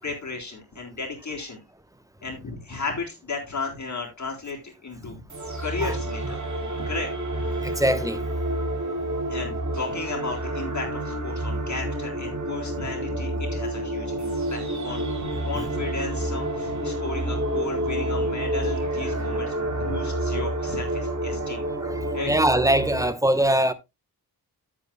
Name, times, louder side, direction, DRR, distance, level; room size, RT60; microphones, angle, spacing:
voice 1, 0.0-1.6 2.2-5.2 5.5-6.4 6.8-7.1 7.4-7.8 9.3-21.6 22.1-22.3, left 3 dB, 45° left, 4.0 m, -34 dB
sound 1, 5.3-23.1, right 1 dB, 45° right, 3.4 m, -29 dB
voice 2, 7.6-8.2 21.8-23.7, right 1 dB, 10° right, 0.9 m, -22 dB
13.0 x 8.9 x 2.2 m
wide cardioid pair, 145°, 39 cm